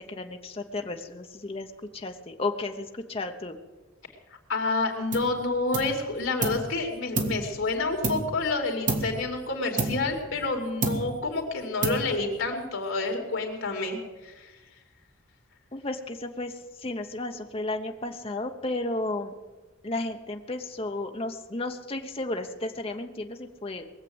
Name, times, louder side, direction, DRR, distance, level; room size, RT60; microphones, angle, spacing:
voice 1, 0.0-1.7 1.9-3.6 15.7-16.5 16.8-19.3 19.8-23.8, left 2 dB, 30° left, 5 dB, 0.9 m, -33 dB
voice 2, 4.3-14.5, left 3 dB, 75° left, 3 dB, 2.8 m, -29 dB
sound 1, 5.1-5.4 5.7-6.7 7.2-8.5 8.9-9.3 9.8-10.5 10.8-11.3 11.8-12.4, right 3 dB, 40° right, 1.6 m, -30 dB
20.5 x 7.6 x 7.8 m, 1.2 s
head